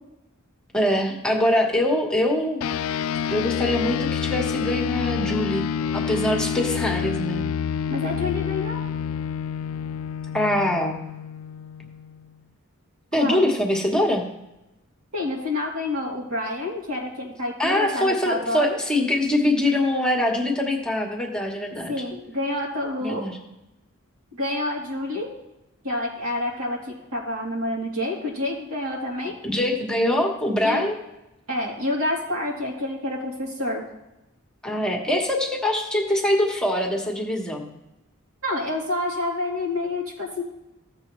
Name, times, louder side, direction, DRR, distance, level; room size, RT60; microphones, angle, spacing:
voice 1, 0.7-2.6 3.3-5.7 5.9-7.4 10.3-11.0 13.1-14.2 17.6-21.9 23.0-23.4 29.4-31.0 34.6-37.7, left 1 dB, 5° left, 0 dB, 1.2 m, -23 dB
sound 1, 2.6-12.3, left 7 dB, 75° left, 0.3 m, -28 dB
voice 2, 7.9-8.8 13.2-13.5 15.1-18.8 21.9-23.3 24.3-25.3 25.8-26.8 27.1-29.3 30.6-30.8 31.5-33.8 38.4-40.4, left 2 dB, 90° right, -3 dB, 2.8 m, -28 dB
15.0 x 6.7 x 3.1 m, 0.93 s
head